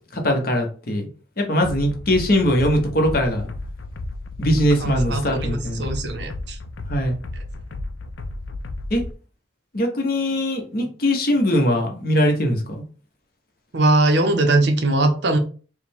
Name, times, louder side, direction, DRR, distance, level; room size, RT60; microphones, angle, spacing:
voice 1, 0.1-1.1 1.4-3.5 4.4-5.9 6.9-7.2 8.9-9.0 9.7-12.8, equal, 50° left, 2 dB, 0.9 m, -21 dB
sound 1, 1.6-9.1, left 2 dB, 70° left, 0.5 m, -32 dB
voice 2, 4.8-6.6 13.7-15.4, right 2 dB, 60° right, 6 dB, 0.6 m, -20 dB
4.8 x 2.1 x 3.5 m, 0.39 s
head